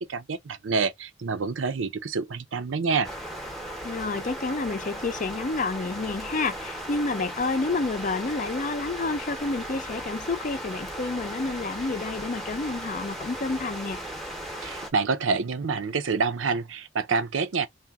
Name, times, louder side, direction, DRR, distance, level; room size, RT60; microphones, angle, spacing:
voice 1, 0.0-3.1 14.6-17.7, right 4 dB, 85° right, 0.6 m, -27 dB
sound 1, 3.0-14.9, right 1 dB, ahead, 0.7 m, -36 dB
voice 2, 3.8-14.0, left 3 dB, 45° left, 0.5 m, -29 dB
2.8 x 2.2 x 3.4 m
head